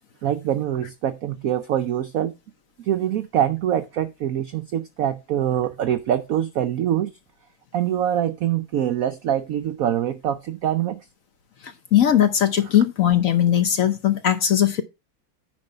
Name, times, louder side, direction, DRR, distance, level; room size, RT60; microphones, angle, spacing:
voice 1, 0.2-2.3 2.8-7.1 7.7-11.0, right 10 dB, 75° right, 0.8 m, -24 dB
voice 2, 11.9-14.8, left 10 dB, 60° left, 0.9 m, -19 dB
9.8 x 4.6 x 5.4 m
omnidirectional pair, 2.1 m